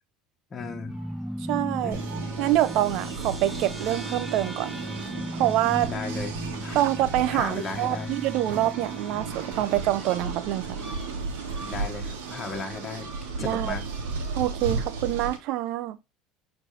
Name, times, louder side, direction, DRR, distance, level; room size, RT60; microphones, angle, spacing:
voice 1, 0.5-1.0 1.8-2.0 5.8-6.4 6.6-6.8 7.3-8.1 11.6-13.1 13.4-13.9, left 4 dB, 30° left, 1.6 m, -35 dB
sound 1, 0.6-11.4, equal, ahead, 0.3 m, -37 dB
sound 2, 0.9-14.5, right 1 dB, 25° right, 3.2 m, -51 dB
voice 2, 1.5-2.0 2.4-4.7 5.3-5.9 6.7-10.8 13.4-13.7 14.4-16.0, right 14 dB, 65° right, 0.7 m, -26 dB
sound 3, 1.9-15.4, right 4 dB, 85° right, 2.3 m, -35 dB
7.0 x 4.5 x 4.2 m
supercardioid pair, 110°, 0 cm